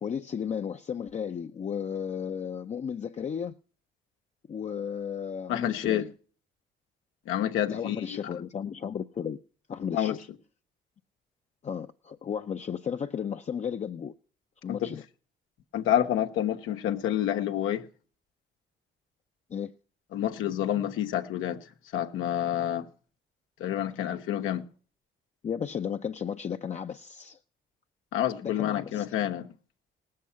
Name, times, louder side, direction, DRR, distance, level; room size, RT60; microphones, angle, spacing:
voice 1, 0.0-3.6 4.5-6.1 7.7-9.4 9.7-10.3 11.6-14.1 14.6-15.0 19.5-19.7 25.4-27.4 28.4-29.1, left 7 dB, 35° left, 0.5 m, -34 dB
voice 2, 5.5-6.1 7.3-8.2 9.9-10.2 14.7-15.0 15.7-17.8 20.1-21.6 21.9-22.9 23.6-24.6 28.1-29.5, left 11 dB, 90° left, 0.9 m, -28 dB
18.0 x 7.6 x 5.6 m
cardioid pair, 90°, 20 cm